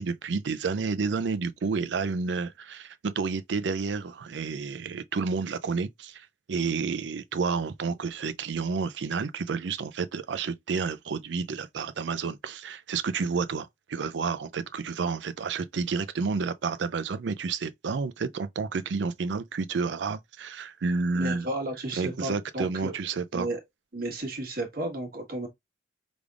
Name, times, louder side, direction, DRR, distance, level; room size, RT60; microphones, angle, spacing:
voice 1, 0.0-21.5 22.0-23.5, right 4 dB, 75° right, 0.4 m, -30 dB
voice 2, 21.1-22.9 23.3-23.6 23.9-25.5, right 1 dB, 55° right, 1.5 m, -33 dB
5.1 x 3.4 x 2.4 m
head